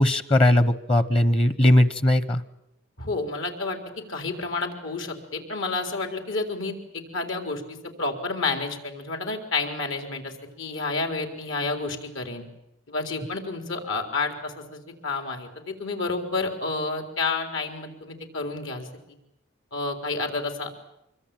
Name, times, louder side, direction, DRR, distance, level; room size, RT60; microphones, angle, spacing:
voice 1, 0.0-2.4, left 1 dB, 25° left, 14 dB, 0.9 m, -19 dB
voice 2, 3.0-12.4 12.9-18.9 19.7-20.7, left 3 dB, 75° left, 5 dB, 4.2 m, -30 dB
25.5 x 23.0 x 9.1 m, 0.83 s
head